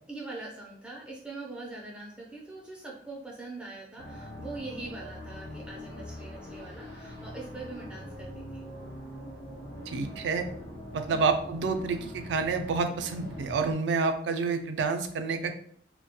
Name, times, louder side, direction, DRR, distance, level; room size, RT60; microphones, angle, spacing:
voice 1, 0.1-8.6 11.1-11.2, right 2 dB, 5° right, -3 dB, 0.3 m, -42 dB
sound 1, 4.0-13.7, left 1 dB, 70° left, 0.6 m, -43 dB
voice 2, 9.9-10.5 10.9-15.5, right 4 dB, 80° right, 7 dB, 0.3 m, -28 dB
2.2 x 2.1 x 2.8 m, 0.62 s
head